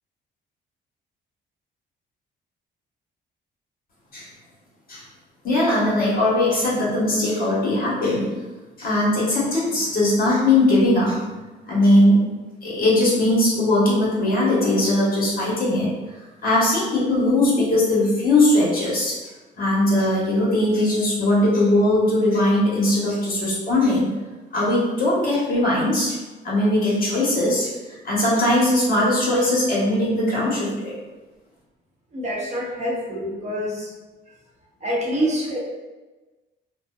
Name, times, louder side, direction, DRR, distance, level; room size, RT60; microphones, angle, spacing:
voice 1, 5.4-8.3 8.8-11.2 11.7-12.2 12.6-15.9 16.4-19.1 19.6-24.1 24.5-26.2 26.4-27.7 28.0-30.9, left 1 dB, 50° left, -6 dB, 1.1 m, -20 dB
voice 2, 32.1-33.9 34.8-35.6, equal, 35° right, -5 dB, 0.8 m, -26 dB
2.6 x 2.1 x 2.3 m, 1.2 s
cardioid pair, 90°, 20 cm